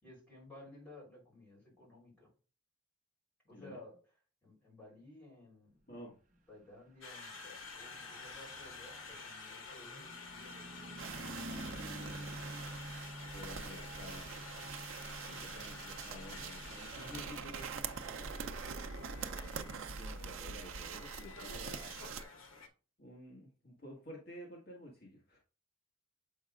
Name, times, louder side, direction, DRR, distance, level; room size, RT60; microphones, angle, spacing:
voice 1, 0.0-2.3 3.4-3.9 4.4-5.9 6.5-11.5 15.2-15.4, left 2 dB, 5° left, -5 dB, 3.6 m, -56 dB
voice 2, 3.5-3.8 5.9-6.2 13.2-14.3 15.4-18.3 19.2-22.0 23.0-25.4, equal, 50° left, -2 dB, 1.5 m, -52 dB
Conversation, 7.0-22.7, left 4 dB, 80° left, 1.2 m, -50 dB
Car passing by / Truck, 7.1-20.8, equal, 40° right, 0.8 m, -51 dB
sound 1, 11.0-22.2, right 6 dB, 80° right, 0.6 m, -44 dB
7.4 x 5.3 x 2.4 m, 0.36 s
head